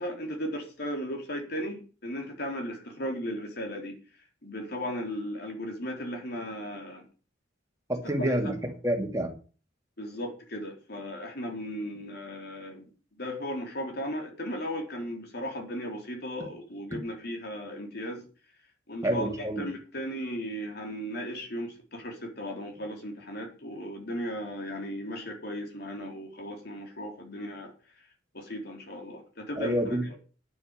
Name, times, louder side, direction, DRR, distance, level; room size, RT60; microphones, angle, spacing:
voice 1, 0.0-4.0 4.4-7.0 8.0-8.4 10.0-12.9 13.2-18.2 18.9-27.7 28.3-29.8, equal, 55° left, 2 dB, 4.0 m, -36 dB
voice 2, 7.9-9.3 19.0-19.7 29.6-30.2, right 1 dB, 15° right, 3 dB, 2.4 m, -28 dB
9.8 x 9.8 x 6.7 m, 0.37 s
head